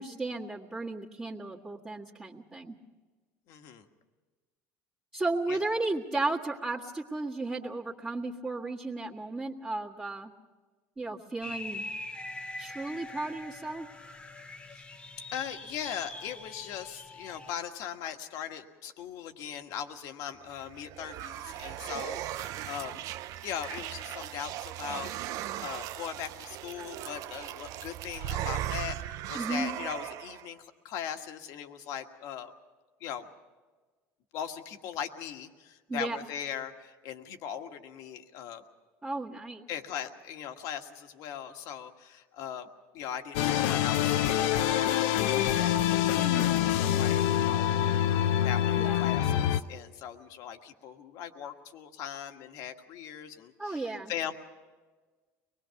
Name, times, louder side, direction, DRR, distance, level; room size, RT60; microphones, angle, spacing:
voice 1, 0.0-2.8 5.1-10.3 11.0-11.9 12.6-13.9 29.3-29.7 35.9-36.2 39.0-39.6 46.2-46.8 48.8-49.0 53.6-54.1, right 2 dB, 20° right, -8 dB, 1.7 m, -34 dB
voice 2, 3.5-3.8 5.5-5.6 14.7-14.8 15.3-23.0 23.4-25.1 25.6-32.5 33.0-33.3 34.3-38.6 39.7-42.7 42.9-48.0 48.4-54.3, left 9 dB, 65° left, 6 dB, 1.6 m, -40 dB
sound 1, 11.4-17.5, left 2 dB, 15° left, 0.9 m, -43 dB
sound 2, 20.5-30.5, right 13 dB, 60° right, 0.6 m, -38 dB
sound 3, 43.3-49.6, left 11 dB, 85° left, 0.8 m, -26 dB
24.0 x 20.5 x 5.8 m, 1.4 s
supercardioid pair, 110°, 6 cm